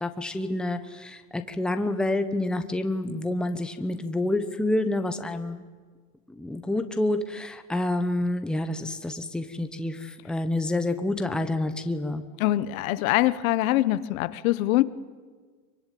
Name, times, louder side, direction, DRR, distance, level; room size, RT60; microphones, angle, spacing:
voice 1, 0.0-5.6 6.4-12.2, left 1 dB, ahead, 8 dB, 1.0 m, -28 dB
voice 2, 12.4-14.8, left 16 dB, 70° left, 15 dB, 1.3 m, -23 dB
24.5 x 23.5 x 9.4 m, 1.5 s
supercardioid pair, 155°, 43 cm